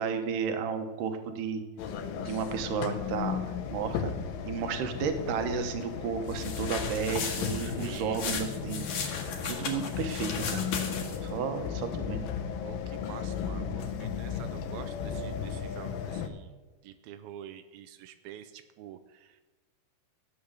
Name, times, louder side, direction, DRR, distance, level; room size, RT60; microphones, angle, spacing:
voice 1, 0.0-1.6 2.2-3.4 3.7-4.1 4.5-10.7 11.2-12.3, right 6 dB, 70° right, 7 dB, 2.6 m, -33 dB
sound 1, 1.8-16.3, left 7 dB, 75° left, 2.6 m, -35 dB
sound 2, 6.3-11.3, left 5 dB, 55° left, 2.9 m, -36 dB
voice 2, 7.8-8.4 12.6-16.5 16.8-19.4, right 10 dB, 90° right, 9 dB, 2.5 m, -47 dB
14.5 x 8.6 x 6.6 m, 1.2 s
omnidirectional pair, 4.3 m